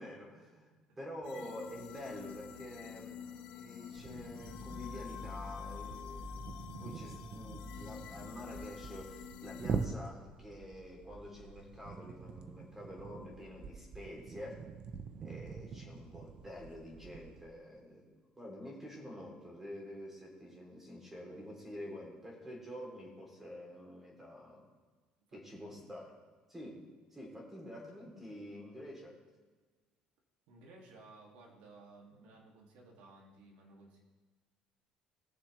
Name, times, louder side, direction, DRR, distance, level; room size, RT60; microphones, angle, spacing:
voice 1, 0.0-3.2 3.5-6.5 6.8-14.6 15.2-18.0 18.4-24.6 25.3-26.1 26.5-29.2, equal, 10° right, -1 dB, 3.3 m, -48 dB
sound 1, 1.2-9.9, left 7 dB, 75° left, 1.0 m, -47 dB
sound 2, 4.0-17.4, right 5 dB, 45° right, 0.8 m, -45 dB
voice 2, 25.3-25.9 30.5-34.0, right 2 dB, 80° right, -1 dB, 2.6 m, -57 dB
20.0 x 7.0 x 3.4 m, 1.4 s
cardioid pair, 145°, 2 cm